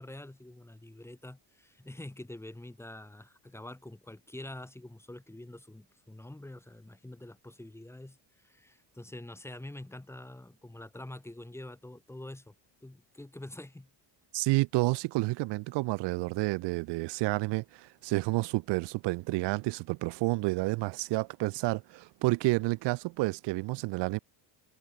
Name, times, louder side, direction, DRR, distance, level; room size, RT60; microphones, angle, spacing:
voice 1, 0.0-12.5 12.8-13.9, left 1 dB, 5° left, 1.6 m, -46 dB
voice 2, 14.3-24.2, right 22 dB, 70° right, 0.6 m, -30 dB
cardioid pair, 120°, 43 cm